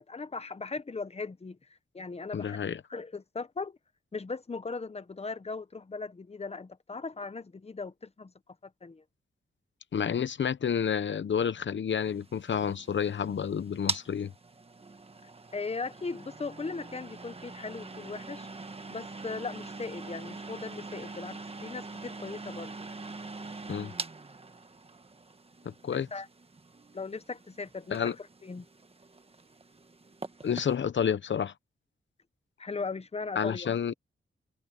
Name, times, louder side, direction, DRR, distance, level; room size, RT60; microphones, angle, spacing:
voice 1, 0.0-1.6 1.9-2.6 2.9-3.8 4.1-8.3 8.6-9.0 15.5-18.5 18.9-22.7 25.9-26.3 26.9-28.6 32.6-33.7, left 4 dB, 30° left, 0.9 m, -38 dB
voice 2, 2.3-2.8 9.9-14.3 23.7-23.9 25.6-26.1 27.9-28.1 30.4-31.5 33.4-33.9, left 7 dB, 60° left, 0.8 m, -30 dB
sound 1, 12.0-30.8, right 3 dB, 30° right, 1.3 m, -43 dB
wide cardioid pair, 120°, 21 cm